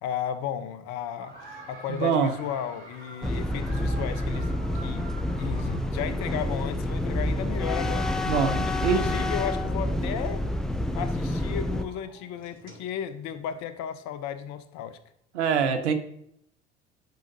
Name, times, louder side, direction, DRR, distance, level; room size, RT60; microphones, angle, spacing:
voice 1, 0.0-1.4 1.7-8.1 8.7-10.5 10.9-15.0, left 9 dB, 50° left, 12 dB, 0.8 m, -34 dB
sound 1, 1.2-13.6, right 2 dB, 35° right, 2.8 m, -49 dB
voice 2, 2.0-2.3 8.3-9.0 15.3-15.9, right 6 dB, 80° right, 8 dB, 0.8 m, -24 dB
sound 2, 3.2-11.9, left 1 dB, ahead, 0.5 m, -28 dB
10.5 x 5.0 x 2.7 m, 0.73 s
hypercardioid pair, 70°, 34 cm